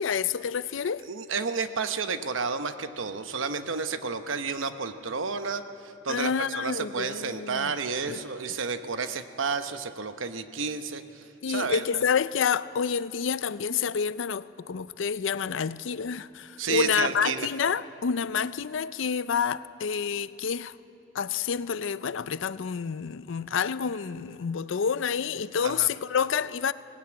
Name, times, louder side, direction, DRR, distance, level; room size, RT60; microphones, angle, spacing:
voice 1, 0.0-1.0 6.1-7.7 8.1-8.2 11.4-20.7 21.1-26.7, left 6 dB, 75° left, 0.5 m, -28 dB
voice 2, 1.1-5.6 6.0-12.0 16.6-17.5 25.6-25.9, right 5 dB, 85° right, 0.9 m, -31 dB
18.5 x 18.5 x 8.8 m
head